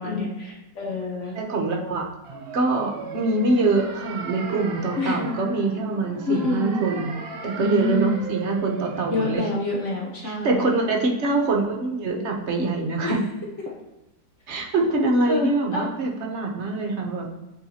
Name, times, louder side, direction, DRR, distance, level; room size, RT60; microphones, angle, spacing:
voice 1, 0.0-1.4 5.0-5.3 6.3-7.0 7.6-8.2 9.1-10.7 13.0-13.1 15.2-15.9, left 3 dB, 50° left, -2 dB, 1.1 m, -27 dB
voice 2, 1.3-2.1 2.5-7.1 7.4-9.4 10.2-13.2 14.5-17.3, right 3 dB, 50° right, 1 dB, 1.0 m, -24 dB
sound 1, 2.2-9.4, right 4 dB, 65° right, 0.6 m, -37 dB
8.9 x 4.0 x 2.8 m, 0.98 s
omnidirectional pair, 1.8 m